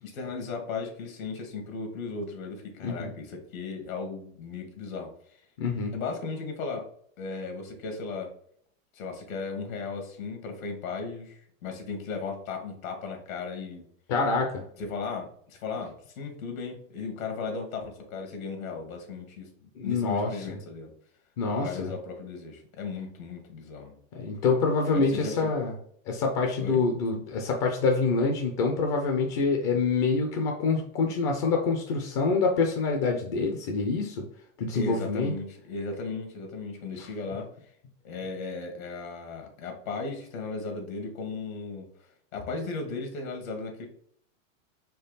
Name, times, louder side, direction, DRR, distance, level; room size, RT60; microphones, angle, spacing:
voice 1, 0.0-5.4 5.9-6.9 7.2-8.3 8.9-13.9 14.8-20.9 21.6-24.0 24.9-25.5 26.6-26.8 34.7-37.5 38.0-41.9 42.3-43.9, left 4 dB, 85° left, 4 dB, 1.6 m, -36 dB
voice 2, 5.6-5.9 14.1-14.6 19.8-20.6 21.4-21.9 24.1-25.7 26.1-34.2 34.6-35.3, left 4 dB, 25° left, 2 dB, 0.4 m, -26 dB
4.4 x 3.1 x 3.9 m, 0.63 s
supercardioid pair, 160°, 40 cm